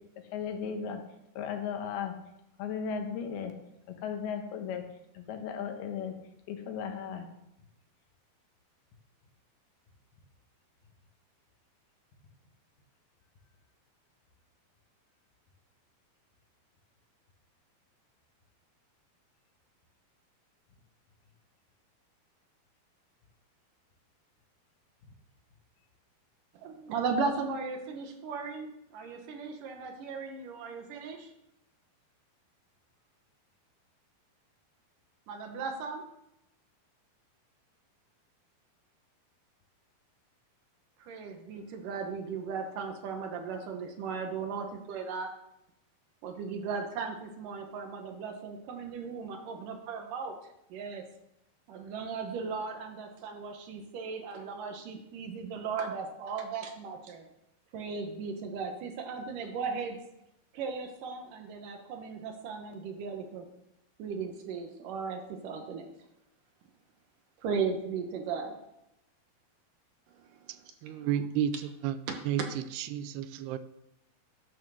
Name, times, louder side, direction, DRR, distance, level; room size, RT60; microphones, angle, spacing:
voice 1, 0.3-1.0 1.4-2.1 2.6-3.5 4.0-4.8 5.2-6.1 6.5-7.3, left 7 dB, 80° left, 5 dB, 3.1 m, -35 dB
voice 2, 26.5-31.3 35.3-36.0 41.0-45.3 46.2-50.3 50.7-51.0 51.7-57.3 57.7-60.0 60.5-63.5 64.0-65.9 67.4-68.6 70.2-71.1 72.1-72.5, right 5 dB, 65° right, 5 dB, 2.4 m, -37 dB
voice 3, 70.8-71.5 71.8-72.0 72.3-72.4 72.8-73.6, right 10 dB, 90° right, 13 dB, 2.7 m, -31 dB
11.5 x 6.4 x 6.3 m, 0.84 s
omnidirectional pair, 4.5 m